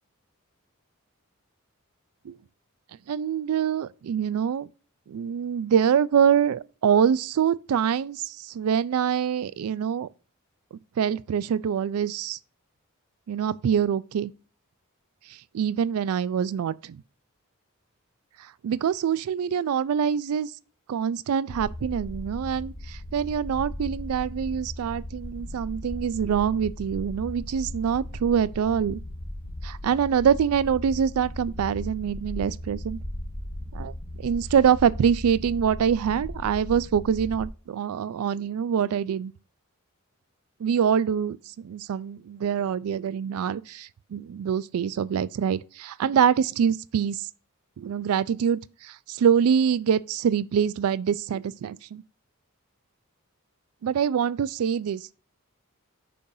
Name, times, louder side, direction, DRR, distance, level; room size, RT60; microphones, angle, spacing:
voice 1, 3.1-4.7 5.1-10.1 10.7-12.4 13.3-14.3 15.3-17.0 18.4-20.5 20.9-29.0 29.6-33.0 33.7-33.9 34.2-39.3 40.6-47.3 47.8-52.0 53.8-55.1, right 8 dB, 75° right, 0.3 m, -25 dB
sound 1, 21.5-37.5, left 1 dB, 90° left, 1.4 m, -37 dB
8.5 x 5.4 x 2.6 m
head